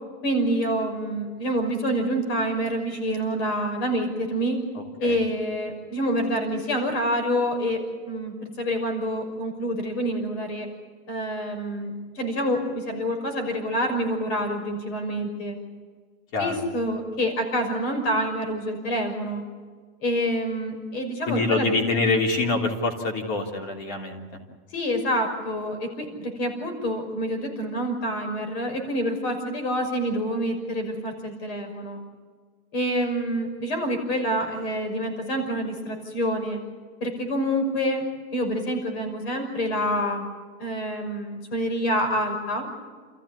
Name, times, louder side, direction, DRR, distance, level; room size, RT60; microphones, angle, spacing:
voice 1, 0.2-4.6 5.0-10.7 11.1-15.6 16.4-19.4 20.0-21.8 24.7-32.0 32.7-36.6 37.0-38.1 38.3-40.3 40.6-42.7, equal, 80° left, 5 dB, 5.8 m, -27 dB
voice 2, 21.3-24.2, left 3 dB, 45° left, 2 dB, 3.3 m, -25 dB
28.5 x 15.0 x 8.6 m, 1.5 s
supercardioid pair, 175°, 33 cm